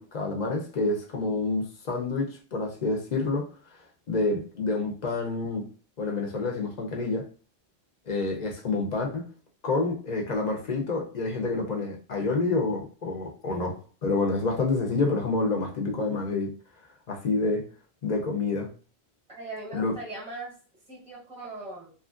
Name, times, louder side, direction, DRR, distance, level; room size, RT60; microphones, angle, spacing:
voice 1, 0.0-3.5 4.1-5.7 6.0-7.2 8.1-9.2 9.6-16.5 17.1-17.6 18.0-18.7 19.7-19.9, left 3 dB, 50° left, 1 dB, 0.7 m, -28 dB
voice 2, 19.3-20.5 20.9-21.9, right 2 dB, 5° right, -6 dB, 0.9 m, -39 dB
2.8 x 2.5 x 2.4 m, 0.38 s
omnidirectional pair, 1.1 m